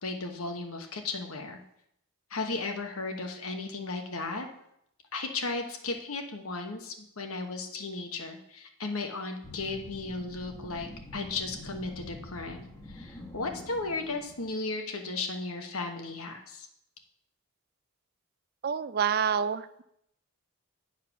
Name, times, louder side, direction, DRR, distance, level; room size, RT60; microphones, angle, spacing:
voice 1, 0.0-1.6 2.3-4.5 5.1-16.7, left 3 dB, 75° left, 4 dB, 1.2 m, -35 dB
sound 1, 9.4-14.5, left 1 dB, 20° left, 1.2 m, -46 dB
voice 2, 18.6-19.8, right 7 dB, 45° right, 13 dB, 0.4 m, -28 dB
10.0 x 4.7 x 5.9 m, 0.76 s
head